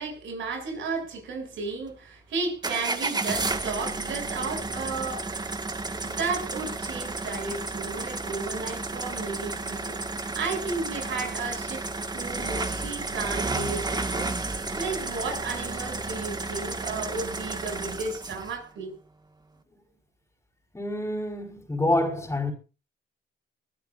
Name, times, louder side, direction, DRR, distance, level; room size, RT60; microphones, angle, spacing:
voice 1, 0.0-5.3 6.0-11.9 12.1-14.3 14.7-19.0, right 4 dB, 75° right, 7.0 m, -33 dB
sound 1, 2.6-18.6, right 3 dB, 20° right, 1.8 m, -32 dB
voice 2, 20.7-22.5, left 1 dB, 15° left, 4.7 m, -27 dB
23.5 x 13.5 x 2.6 m
cardioid pair, 90°, 20 cm